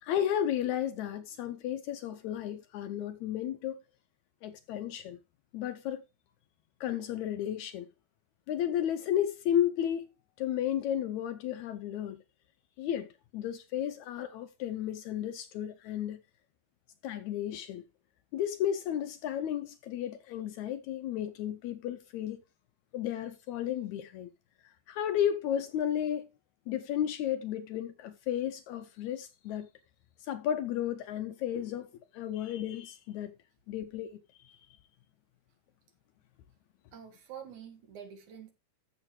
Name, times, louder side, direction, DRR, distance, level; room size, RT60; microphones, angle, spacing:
voice 1, 0.0-3.8 4.4-5.2 5.5-6.0 6.8-7.9 8.5-10.1 10.4-12.2 12.8-13.1 13.3-16.2 17.0-17.8 18.3-22.4 22.9-24.3 24.6-26.3 26.7-29.7 30.2-31.9 32.1-33.3 33.7-34.6, left 10 dB, 75° left, 1.8 m, -33 dB
voice 2, 36.9-38.5, right 8 dB, 65° right, 3.2 m, -47 dB
13.5 x 6.9 x 3.1 m
omnidirectional pair, 3.8 m